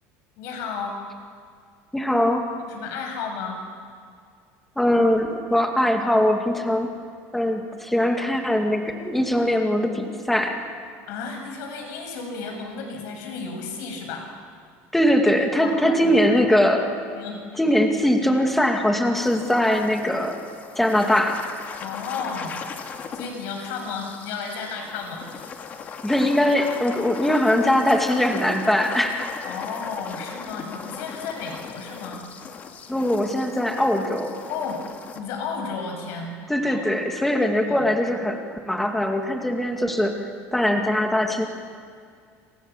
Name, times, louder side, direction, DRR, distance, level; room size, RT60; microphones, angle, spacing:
voice 1, 0.4-1.0 2.6-3.6 11.1-14.3 15.6-16.6 17.1-17.6 21.8-22.7 23.1-25.3 29.4-32.2 34.5-34.8 35.1-36.3 36.6-36.8 37.7-37.8, left 5 dB, 60° left, 3 dB, 7.2 m, -33 dB
voice 2, 1.9-2.5 4.8-6.9 7.3-10.6 14.9-16.9 17.6-20.4 20.8-21.5 26.0-29.4 32.9-34.3 36.5-41.5, left 1 dB, 5° left, 3 dB, 2.2 m, -21 dB
sound 1, 19.2-35.2, left 6 dB, 30° left, 1.9 m, -38 dB
28.5 x 28.0 x 7.3 m, 2.2 s
cardioid pair, 175°, 6 cm